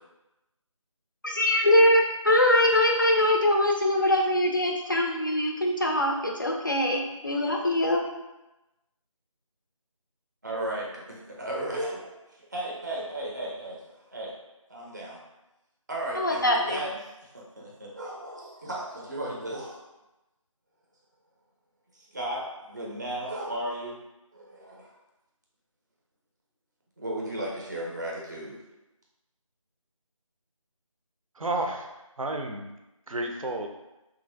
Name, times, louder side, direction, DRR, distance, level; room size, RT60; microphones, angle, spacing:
voice 1, 1.2-8.0 16.2-16.8, left 1 dB, 40° left, 1 dB, 0.3 m, -23 dB
voice 2, 10.4-12.1 12.5-14.3 14.7-15.2 15.9-16.9 17.3-19.8 21.9-24.0 24.3-24.9 27.0-28.6, right 1 dB, 30° right, -4 dB, 0.5 m, -35 dB
voice 3, 31.4-31.9 32.2-32.7 33.1-33.7, right 2 dB, 80° right, 3 dB, 0.5 m, -31 dB
2.9 x 2.4 x 2.4 m, 0.98 s
figure-of-eight pair, 165°, 17 cm